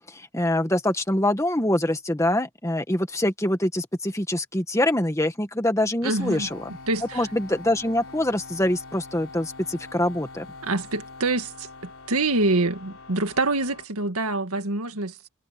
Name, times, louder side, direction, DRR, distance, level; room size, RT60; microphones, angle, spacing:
voice 1, 0.1-6.6 7.1-10.5, left 1 dB, 15° left, 1.7 m, -24 dB
voice 2, 6.0-6.5 6.9-7.3 10.6-15.3, right 2 dB, 85° right, 1.9 m, -26 dB
sound 1, 6.2-13.9, left 3 dB, 70° left, 3.6 m, -44 dB
head